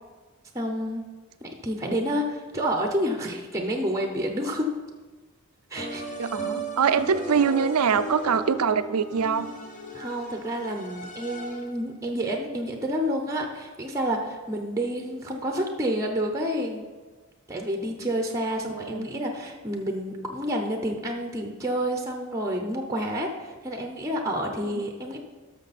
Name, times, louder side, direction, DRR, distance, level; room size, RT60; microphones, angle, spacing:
voice 1, 0.5-1.1 1.4-4.7 5.7-6.0 9.9-16.9 17.5-25.2, equal, 15° right, 3 dB, 0.7 m, -29 dB
sound 1, 5.8-11.8, right 1 dB, 35° left, 1.2 m, -37 dB
voice 2, 6.2-9.5 18.6-19.1 24.7-24.8, right 6 dB, 80° right, 12 dB, 0.5 m, -24 dB
12.0 x 6.4 x 4.2 m, 1.3 s
head